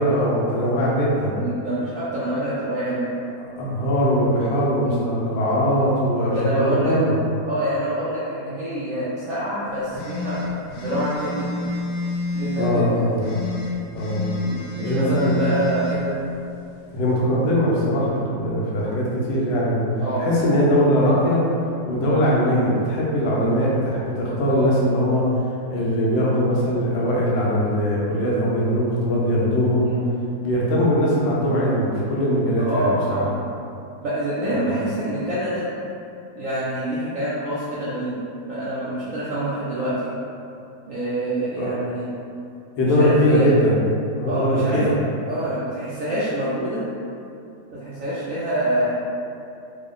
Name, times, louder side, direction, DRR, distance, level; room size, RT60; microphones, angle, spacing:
voice 1, 0.0-1.4 3.6-7.2 12.6-13.2 13.9-14.2 14.8-15.4 16.9-19.8 20.2-21.4 21.8-25.3 25.7-29.9 30.4-33.3 34.5-34.7 41.6-41.8 42.8-43.8 44.2-44.9, equal, 90° left, -5 dB, 1.5 m, -21 dB
voice 2, 1.3-3.1 4.8-5.1 6.3-7.0 7.5-10.4 10.8-11.7 12.3-13.0 14.4-16.1 20.0-20.3 24.4-24.7 29.8-30.1 32.5-33.4 34.0-35.7 36.3-38.2 38.5-40.1 40.9-42.1 42.8-43.5 44.3-44.8 45.3-46.8 47.7-48.9, right 1 dB, 75° right, -10 dB, 0.7 m, -26 dB
sound 1, 9.9-12.7 13.2-16.0, left 1 dB, 70° left, 0.9 m, -29 dB
3.6 x 2.1 x 3.7 m, 2.6 s
omnidirectional pair, 2.0 m